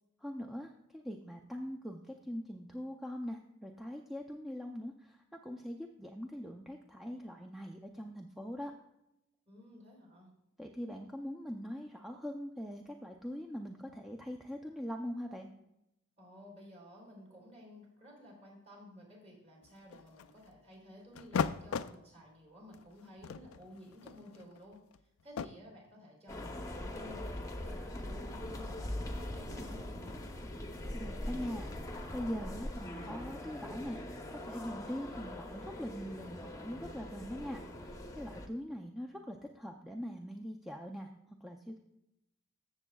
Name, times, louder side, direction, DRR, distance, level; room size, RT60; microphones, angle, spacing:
voice 1, 0.2-8.7 10.6-15.5 30.9-34.0 34.3-41.8, equal, ahead, 2 dB, 0.5 m, -42 dB
voice 2, 9.5-10.3 16.2-24.8 25.2-30.2, equal, 30° right, -2 dB, 3.6 m, -54 dB
sound 1, 19.6-20.5 21.2-22.0 22.7-22.9 23.2-25.5, left 6 dB, 80° left, 0.4 m, -37 dB
sound 2, 26.3-38.5, left 1 dB, 15° left, 0.8 m, -42 dB
14.5 x 7.1 x 2.3 m, 0.85 s
head